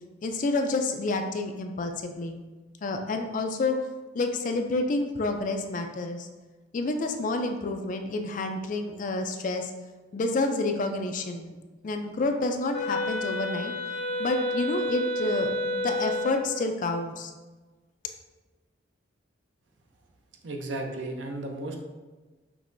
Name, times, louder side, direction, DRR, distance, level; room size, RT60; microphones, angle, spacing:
voice 1, 0.2-2.4 2.8-3.8 4.1-6.3 6.7-9.7 10.1-11.6 11.8-13.7 14.2-17.3, left 2 dB, 45° left, 5 dB, 0.4 m, -29 dB
Wind instrument woodwind instrument, 12.7-16.6, left 1 dB, 80° left, 0.9 m, -30 dB
voice 2, 20.4-21.8, right 2 dB, 70° right, 3 dB, 0.6 m, -34 dB
6.0 x 3.0 x 2.6 m, 1.3 s
head